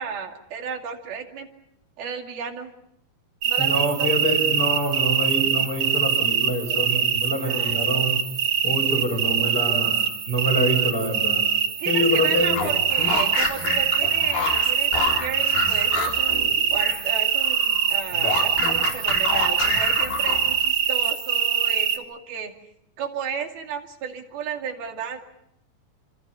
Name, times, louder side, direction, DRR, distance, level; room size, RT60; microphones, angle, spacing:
voice 1, 0.0-1.5 2.0-2.7 3.5-4.1 7.4-7.8 9.0-9.9 11.8-22.5 23.0-25.3, right 6 dB, 80° right, 4 dB, 4.4 m, -34 dB
sound 1, 3.4-22.0, right 7 dB, 50° right, 2.3 m, -23 dB
voice 2, 3.6-8.2 8.6-11.4 11.9-12.5 13.0-13.2, equal, 25° left, 1 dB, 7.0 m, -26 dB
sound 2, 12.4-17.1 17.4-20.7, left 4 dB, 80° left, 6.0 m, -28 dB
29.0 x 26.5 x 5.6 m, 0.78 s
omnidirectional pair, 4.3 m